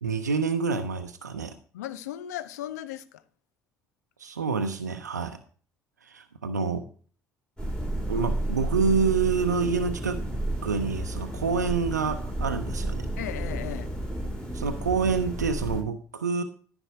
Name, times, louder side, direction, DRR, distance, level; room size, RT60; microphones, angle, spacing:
voice 1, 0.0-1.5 4.2-5.4 6.0-6.9 8.1-10.2 10.6-13.1 14.5-16.4, right 5 dB, 85° right, 0.6 m, -27 dB
voice 2, 1.7-3.2 13.2-14.0, left 12 dB, 75° left, 0.7 m, -36 dB
sound 1, 7.6-15.8, right 1 dB, 10° left, 4.8 m, -32 dB
14.0 x 6.2 x 4.7 m
figure-of-eight pair, 45°, 9 cm